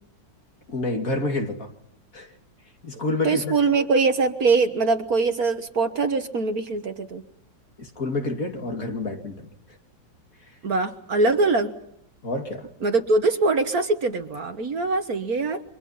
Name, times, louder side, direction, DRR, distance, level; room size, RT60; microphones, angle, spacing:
voice 1, 0.7-1.7 2.1-2.3 2.8-3.5 7.8-9.5 12.2-12.7, left 2 dB, 45° left, 3 dB, 2.9 m, -28 dB
voice 2, 3.2-7.2 10.6-11.7 12.8-15.6, right 3 dB, 55° right, 8 dB, 1.7 m, -22 dB
29.5 x 24.5 x 5.8 m, 0.72 s
omnidirectional pair, 2.0 m